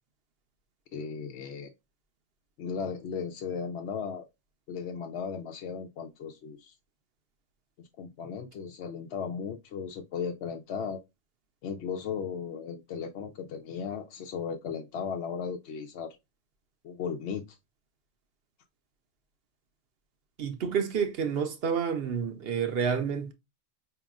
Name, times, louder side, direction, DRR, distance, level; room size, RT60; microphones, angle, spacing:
voice 1, 0.9-1.7 2.6-4.2 4.7-6.7 7.8-11.0 11.6-16.1 16.8-17.6, left 6 dB, 65° left, 0.8 m, -36 dB
voice 2, 20.4-23.3, right 7 dB, 60° right, 0.9 m, -29 dB
5.0 x 2.9 x 2.4 m
omnidirectional pair, 1.3 m